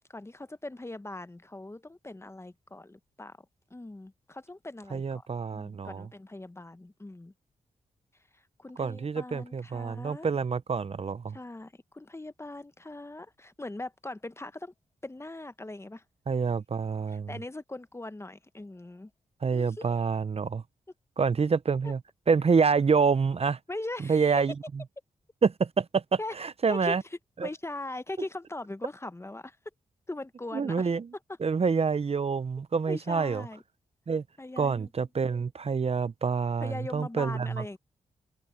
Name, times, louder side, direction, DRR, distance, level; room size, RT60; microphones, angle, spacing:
voice 1, 0.1-3.4 3.7-5.3 5.5-7.3 8.3-10.3 11.3-14.7 15.0-16.0 17.1-19.1 19.5-20.0 21.8-21.9 23.7-24.4 26.2-26.3 26.7-29.6 30.1-30.9 32.9-33.6 34.4-34.9 36.6-37.8, left 2 dB, 20° left, 1.0 m, -40 dB
voice 2, 4.9-6.1 8.8-11.4 16.3-17.3 19.4-20.6 21.2-22.0 22.3-23.6 24.1-24.5 25.4-27.0 27.4-27.5 30.5-31.1 31.4-33.4 34.1-34.2 34.6-37.8, right 5 dB, 45° right, 0.8 m, -27 dB
supercardioid pair, 45°, 14 cm